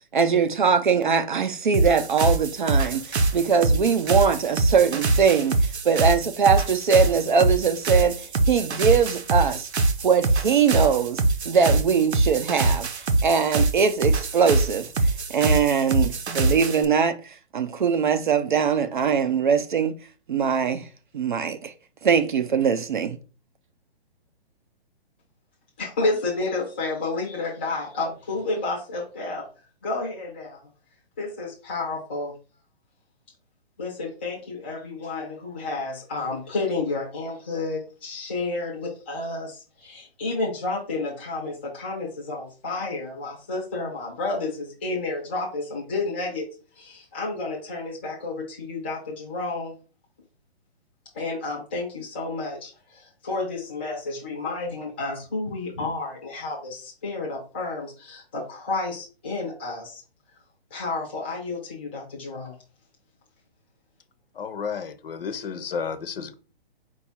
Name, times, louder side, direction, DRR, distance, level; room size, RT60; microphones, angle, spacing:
voice 1, 0.1-9.7 10.0-20.0 20.3-20.9 21.1-21.7 22.0-23.2, right 6 dB, 50° right, 0.5 m, -22 dB
sound 1, 1.7-16.8, right 2 dB, 85° right, 0.8 m, -24 dB
voice 2, 25.8-29.5 29.8-30.6 31.2-32.3 33.8-46.5 46.8-49.7 51.1-60.0 60.7-62.6, left 3 dB, 10° left, 0.6 m, -31 dB
voice 3, 64.4-66.3, left 6 dB, 60° left, 0.7 m, -32 dB
4.7 x 2.4 x 4.1 m
hypercardioid pair, 170°, 32 cm